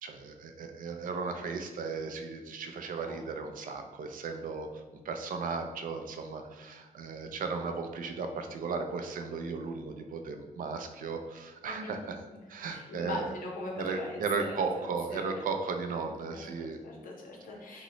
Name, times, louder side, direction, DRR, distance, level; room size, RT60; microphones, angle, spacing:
voice 1, 0.0-12.2 12.5-13.3 13.8-16.8, right 4 dB, 75° right, 5 dB, 0.4 m, -36 dB
voice 2, 12.7-15.4 15.9-17.8, left 2 dB, 75° left, -1 dB, 0.7 m, -41 dB
2.9 x 2.0 x 3.8 m, 1.2 s
wide cardioid pair, 120°, 14 cm